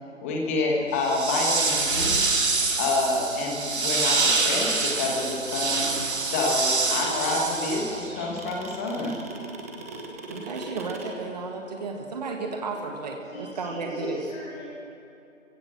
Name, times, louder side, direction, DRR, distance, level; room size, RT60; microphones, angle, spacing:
voice 1, 0.2-2.3 2.8-9.1, left 2 dB, 10° left, -1 dB, 1.4 m, -28 dB
sound 1, 1.0-8.2, right 3 dB, 55° right, 3.2 m, -26 dB
sound 2, 4.6-11.1, right 4 dB, 10° right, 1.0 m, -39 dB
voice 2, 10.3-14.2, right 4 dB, 30° right, 2 dB, 1.7 m, -33 dB
voice 3, 13.2-14.6, left 2 dB, 30° left, -9 dB, 6.1 m, -39 dB
25.5 x 16.5 x 7.4 m, 2.8 s
figure-of-eight pair, 160°, 40 cm